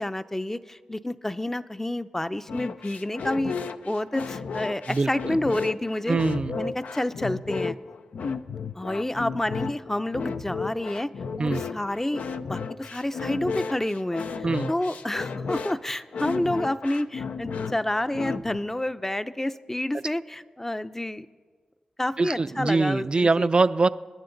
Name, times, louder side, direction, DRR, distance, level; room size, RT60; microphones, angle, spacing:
voice 1, 0.0-6.2 6.5-7.8 8.8-11.1 11.4-21.3 22.0-23.5, left 1 dB, 15° left, 13 dB, 0.6 m, -29 dB
sound 1, 2.5-18.6, left 5 dB, 80° left, 0.5 m, -33 dB
voice 2, 6.1-6.6 11.4-11.6 14.4-14.7 22.2-23.9, right 3 dB, 40° right, 14 dB, 0.4 m, -23 dB
27.0 x 10.5 x 3.9 m, 1.5 s
cardioid pair, 60°, 3 cm